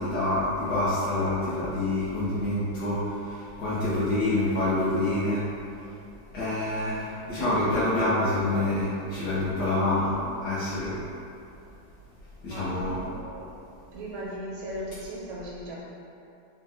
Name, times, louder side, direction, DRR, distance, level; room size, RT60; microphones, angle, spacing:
voice 1, 0.0-5.4 6.3-11.0 12.4-13.1, left 2 dB, 60° left, -13 dB, 1.1 m, -27 dB
voice 2, 12.5-13.5 13.9-15.8, equal, 80° right, -5 dB, 1.4 m, -38 dB
4.1 x 2.1 x 3.4 m, 2.8 s
omnidirectional pair, 2.3 m